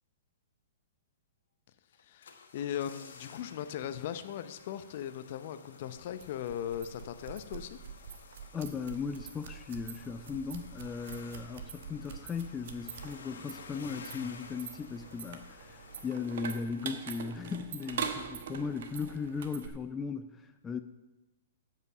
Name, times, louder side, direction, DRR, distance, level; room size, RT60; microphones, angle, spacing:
sound 1, 1.9-17.4 17.7-17.8, left 5 dB, 70° left, 1.2 m, -53 dB
voice 1, 2.0-7.8, left 10 dB, 55° left, 11 dB, 0.7 m, -38 dB
sound 2, 5.9-19.7, right 7 dB, 60° right, 1.1 m, -44 dB
voice 2, 8.5-20.8, left 5 dB, 15° left, 8 dB, 0.4 m, -37 dB
8.1 x 7.6 x 6.0 m, 1.1 s
hypercardioid pair, 120°, 0 cm